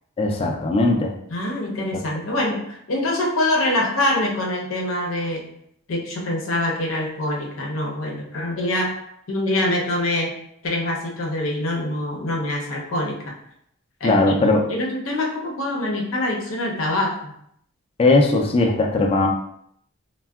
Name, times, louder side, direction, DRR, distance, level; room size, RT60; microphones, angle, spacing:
voice 1, 0.2-1.1 1.9-2.0 14.0-14.6 18.0-19.3, left 2 dB, 30° left, 2 dB, 0.3 m, -18 dB
voice 2, 1.3-5.5 5.9-8.9 9.3-10.4 10.6-13.3 14.0-17.3, left 1 dB, 85° left, -1 dB, 0.7 m, -25 dB
3.4 x 2.2 x 2.3 m, 0.72 s
head